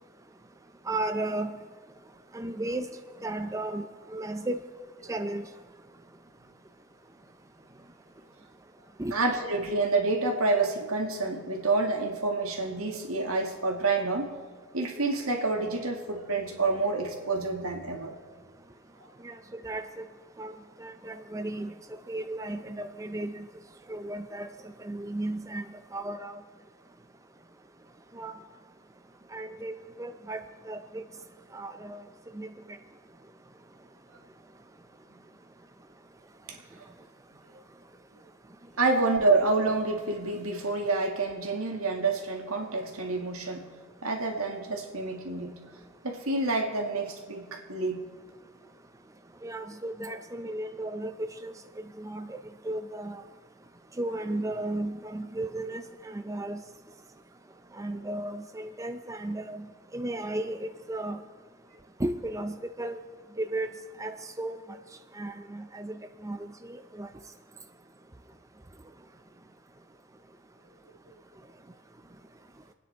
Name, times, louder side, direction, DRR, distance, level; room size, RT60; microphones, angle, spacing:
voice 1, 0.9-1.6 2.3-2.9 3.2-4.6 5.1-5.4 9.0-9.1 19.2-19.4 19.6-19.8 20.4-20.5 20.8-21.7 22.1-23.5 23.9-25.6 25.9-26.4 28.1-28.3 29.3-31.0 31.5-32.0 32.3-32.5 49.4-51.5 52.0-52.4 52.6-53.2 54.0-56.6 57.8-59.7 59.9-61.2 62.0-63.0 63.4-63.7 64.0-64.6 65.2-67.1, right 1 dB, 15° right, 7 dB, 0.5 m, -34 dB
voice 2, 9.1-14.3 14.7-18.1 36.5-36.6 38.8-43.7 44.0-45.5 46.0-48.0, right 3 dB, 80° right, 2 dB, 2.1 m, -28 dB
26.5 x 9.6 x 4.5 m, 1.5 s
head